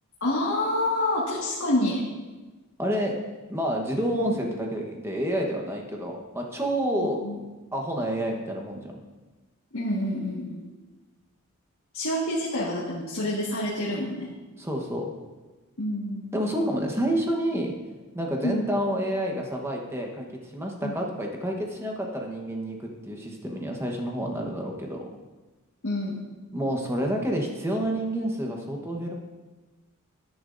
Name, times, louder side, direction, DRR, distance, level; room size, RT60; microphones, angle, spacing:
voice 1, 0.2-2.0 4.1-4.4 7.2-7.4 9.7-10.7 11.9-14.3 15.8-16.3 18.4-18.6 20.8-21.0 25.8-26.2, left 1 dB, 65° left, -6 dB, 1.7 m, -27 dB
voice 2, 2.8-3.1 3.5-7.4 7.7-8.9 14.6-15.0 16.3-17.7 18.1-20.3 20.5-22.8 23.0-25.0 26.5-29.1, equal, 10° right, 1 dB, 1.1 m, -29 dB
12.5 x 10.5 x 2.6 m, 1.2 s
head